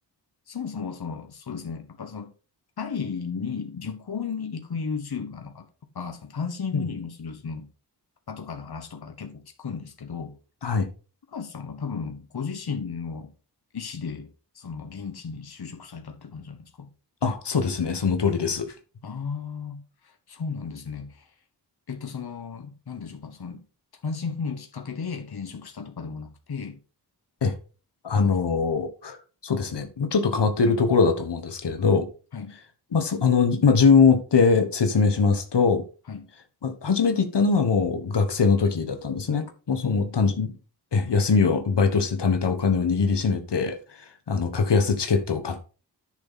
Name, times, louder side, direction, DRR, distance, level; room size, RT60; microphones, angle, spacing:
voice 1, 0.5-2.3 2.8-5.7 5.9-7.7 8.3-10.4 11.3-13.3 13.7-14.3 14.5-16.9 19.0-21.3 21.9-23.6 24.0-26.8 28.1-28.4 32.3-32.6 36.1-36.3 39.8-40.2, left 5 dB, 65° left, 1.3 m, -34 dB
voice 2, 17.2-18.7 27.4-27.5 28.0-29.2 29.4-32.1 32.9-35.8 36.6-40.5 40.9-43.8 44.3-45.7, left 5 dB, 90° left, 1.4 m, -22 dB
10.5 x 6.2 x 4.1 m
wide cardioid pair, 85°, 40 cm